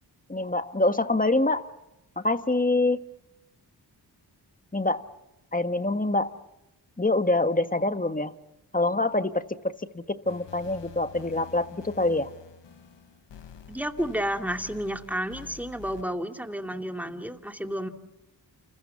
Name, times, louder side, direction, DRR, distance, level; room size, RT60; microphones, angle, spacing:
voice 1, 0.3-1.7 2.2-3.0 4.7-5.1 5.5-6.4 7.0-8.3 8.7-12.3, left 2 dB, 20° left, 9 dB, 1.5 m, -25 dB
sound 1, 10.3-16.0, left 7 dB, 85° left, 1.3 m, -48 dB
voice 2, 13.7-17.9, equal, 5° right, 5 dB, 2.6 m, -31 dB
29.5 x 27.5 x 7.2 m, 0.91 s
cardioid pair, 60°, 42 cm